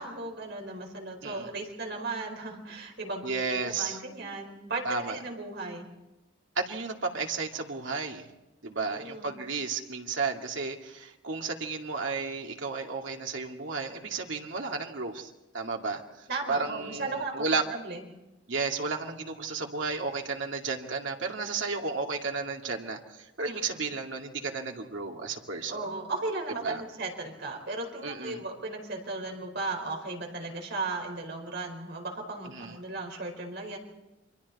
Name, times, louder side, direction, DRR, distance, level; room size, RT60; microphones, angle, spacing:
voice 1, 0.0-5.8 8.7-9.3 16.3-18.0 23.4-23.8 25.7-33.8, right 3 dB, 60° right, 2 dB, 4.7 m, -36 dB
voice 2, 3.2-4.0 4.8-5.2 6.6-8.3 8.6-17.6 18.5-25.8 26.6-26.8 28.0-28.4 32.4-32.8, right 4 dB, 75° right, 2 dB, 2.3 m, -33 dB
29.0 x 24.0 x 4.2 m, 1.0 s
head